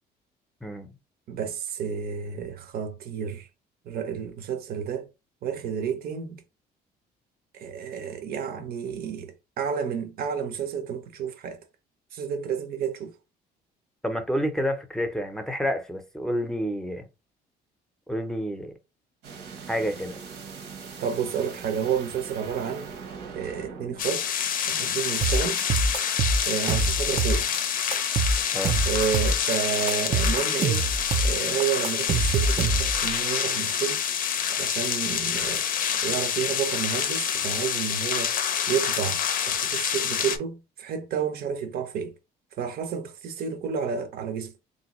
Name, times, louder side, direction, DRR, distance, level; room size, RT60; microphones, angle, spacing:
voice 1, 0.6-0.9 14.0-17.1 18.1-18.7 19.7-20.2 28.5-28.8, equal, 5° left, 0.7 m, -29 dB
voice 2, 1.3-3.5 3.9-5.1 5.4-6.4 7.5-11.6 12.1-13.1 21.0-22.9 23.4-24.2 24.7-25.6 26.5-27.5 28.9-30.8 31.2-34.0 34.5-35.6 36.0-38.3 38.7-39.2 39.5-42.1 42.6-44.5, right 7 dB, 65° right, 0.7 m, -30 dB
sound 1, 19.2-24.0, right 5 dB, 90° right, 1.1 m, -41 dB
sound 2, 24.0-40.4, left 8 dB, 55° left, 0.5 m, -27 dB
sound 3, 25.2-27.6 27.9-29.6 29.9-33.1, right 3 dB, 35° right, 0.4 m, -25 dB
3.3 x 2.6 x 3.0 m
cardioid pair, 110°, 17 cm